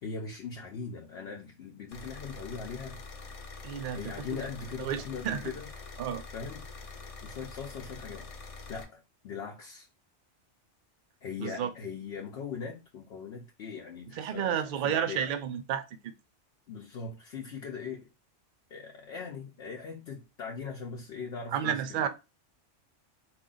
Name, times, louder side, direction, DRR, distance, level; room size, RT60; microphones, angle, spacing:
voice 1, 0.0-3.0 3.9-5.7 6.3-6.7 7.2-8.3 8.7-9.9 11.2-14.6 14.8-15.3 16.7-18.1 18.7-22.1, left 5 dB, 65° left, 0.8 m, -40 dB
sound 1, 1.9-8.8, left 3 dB, 45° left, 0.5 m, -45 dB
voice 2, 3.6-4.4 4.8-5.4 6.0-6.2 11.4-11.7 14.1-16.1 21.5-22.1, right 9 dB, 55° right, 0.6 m, -31 dB
4.6 x 2.4 x 3.8 m
omnidirectional pair, 1.3 m